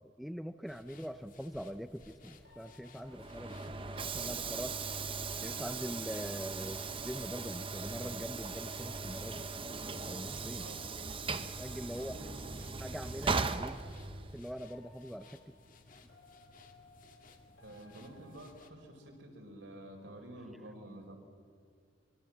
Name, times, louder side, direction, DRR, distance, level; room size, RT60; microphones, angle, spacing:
voice 1, 0.0-4.8 5.4-9.4 10.0-10.6 11.3-12.2 12.8-13.8 14.3-15.5, equal, ahead, 10 dB, 0.5 m, -43 dB
sound 1, 0.7-18.7, left 3 dB, 45° left, 2.1 m, -60 dB
sound 2, 2.4-7.0 8.6-13.2 14.6-19.2, left 2 dB, 70° left, 4.9 m, -62 dB
Train / Sliding door, 3.0-14.5, right 4 dB, 30° right, 0.9 m, -39 dB
voice 2, 10.5-10.9 11.9-12.5 17.6-21.2, right 1 dB, 70° right, 2 dB, 4.7 m, -50 dB
25.0 x 22.5 x 7.4 m, 2.2 s
head